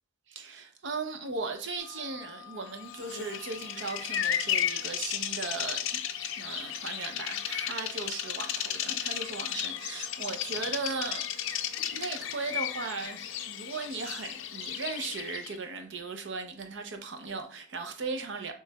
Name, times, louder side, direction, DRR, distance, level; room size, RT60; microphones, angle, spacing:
voice 1, 0.3-18.5, right 4 dB, 65° right, 0.6 m, -37 dB
sound 1, 1.8-13.0, left 6 dB, 15° left, 1.9 m, -54 dB
Bird vocalization bird call bird song, 2.9-15.6, left 10 dB, 80° left, 0.4 m, -34 dB
6.3 x 3.1 x 2.3 m
head